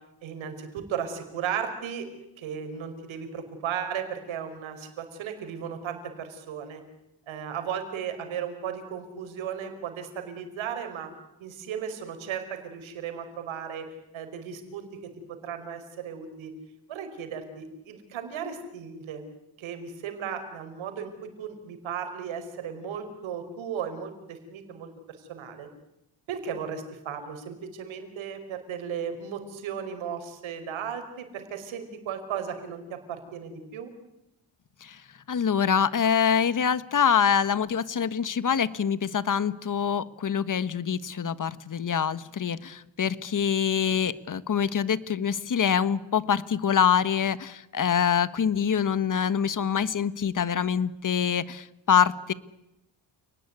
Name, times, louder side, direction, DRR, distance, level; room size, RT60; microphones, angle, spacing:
voice 1, 0.2-2.1 2.4-6.8 7.3-11.1 11.4-16.5 16.9-19.2 19.6-24.9 25.2-25.7 26.3-33.9, right 7 dB, 90° right, 7 dB, 5.3 m, -35 dB
voice 2, 35.3-52.3, left 7 dB, 40° left, 15 dB, 1.5 m, -25 dB
29.5 x 19.5 x 9.8 m, 0.91 s
cardioid pair, 85°, 46 cm